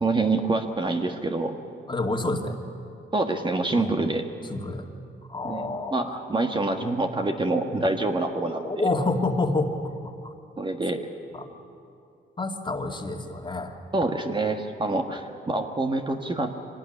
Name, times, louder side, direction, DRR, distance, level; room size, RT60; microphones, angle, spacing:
voice 1, 0.0-1.6 3.1-4.2 5.4-8.9 10.6-11.0 13.9-16.5, right 2 dB, 25° right, 4 dB, 1.6 m, -26 dB
voice 2, 1.9-2.5 3.7-3.9 4.5-4.9 5.3-6.0 8.6-9.9 10.2-10.3 11.3-11.5 12.4-13.7, left 2 dB, 25° left, 3 dB, 2.3 m, -28 dB
24.0 x 18.0 x 10.0 m, 2.5 s
cardioid pair, 90°, 20 cm